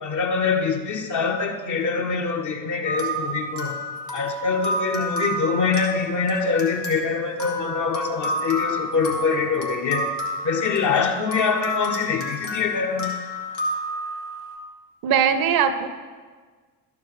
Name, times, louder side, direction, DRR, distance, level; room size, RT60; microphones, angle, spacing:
voice 1, 0.0-3.8 4.1-10.1 10.4-13.1, left 5 dB, 35° left, 3 dB, 1.1 m, -24 dB
sound 1, 2.9-14.6, equal, 90° left, 1.1 m, -30 dB
voice 2, 15.0-15.9, right 7 dB, 45° right, 12 dB, 0.7 m, -20 dB
12.5 x 4.7 x 4.8 m, 1.5 s
figure-of-eight pair, 50°, 49 cm